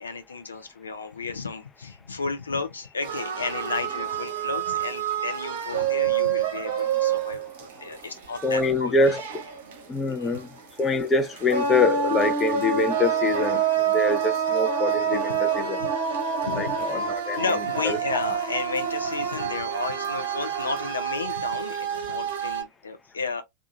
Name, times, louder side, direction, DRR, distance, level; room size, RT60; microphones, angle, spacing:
voice 1, 0.0-8.9 10.1-10.4 15.8-15.9 16.4-16.8 17.4-23.4, left 4 dB, 75° left, 0.5 m, -33 dB
sound 1, 3.0-22.6, right 7 dB, 55° right, 0.8 m, -28 dB
voice 2, 8.4-9.4 9.9-10.5 10.8-16.0 16.4-17.4 17.8-18.0, left 3 dB, 20° left, 0.6 m, -25 dB
2.8 x 2.3 x 2.3 m
figure-of-eight pair, 90°, 0 cm